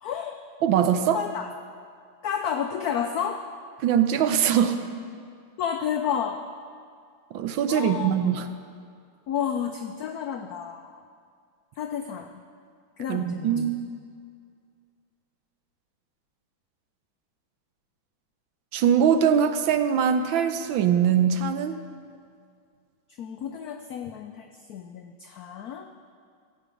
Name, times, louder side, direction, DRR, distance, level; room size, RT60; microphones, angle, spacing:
voice 1, 0.0-0.4 1.1-1.5 2.2-3.4 5.6-6.4 7.7-8.1 9.3-11.0 11.8-12.3 13.0-13.5 23.2-25.9, left 8 dB, 85° left, 6 dB, 0.8 m, -31 dB
voice 2, 0.6-1.2 3.8-4.8 7.3-8.5 13.1-13.8 18.7-21.8, right 8 dB, 75° right, 9 dB, 1.4 m, -22 dB
15.5 x 8.4 x 5.1 m, 2.3 s
omnidirectional pair, 2.2 m